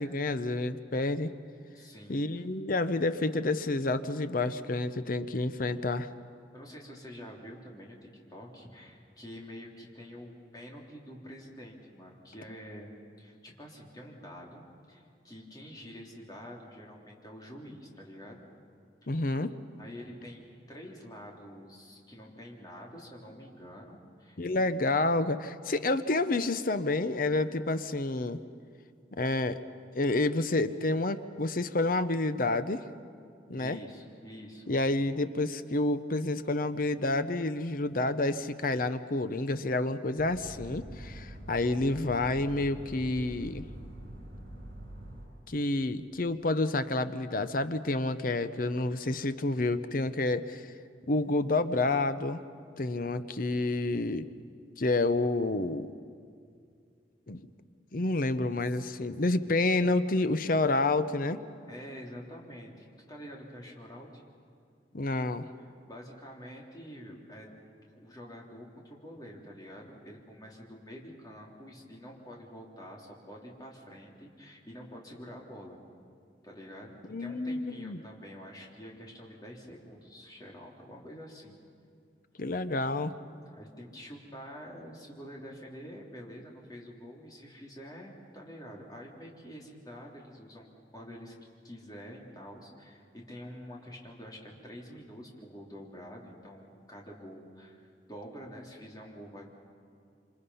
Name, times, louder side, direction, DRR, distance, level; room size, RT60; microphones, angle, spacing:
voice 1, 0.0-1.3 2.1-6.1 19.1-19.5 24.4-28.4 29.2-29.6 29.9-32.8 33.5-33.8 34.7-43.7 45.5-50.7 51.1-52.4 52.8-54.3 54.8-55.9 57.3-57.4 57.9-61.4 64.9-65.5 77.1-78.0 82.4-83.2, left 2 dB, 50° left, 12 dB, 0.8 m, -29 dB
voice 2, 1.7-2.4 6.5-12.9 13.2-18.4 19.1-19.2 19.8-24.6 33.5-34.7 58.7-58.8 59.5-59.6 61.7-64.2 65.6-67.5 67.9-75.8 76.4-81.6 83.5-90.7 90.9-91.3 91.6-99.5, equal, 20° left, -2 dB, 3.3 m, -47 dB
sound 1, 40.2-45.3, right 1 dB, 60° right, 6.5 m, -45 dB
27.0 x 26.5 x 5.6 m, 2.3 s
head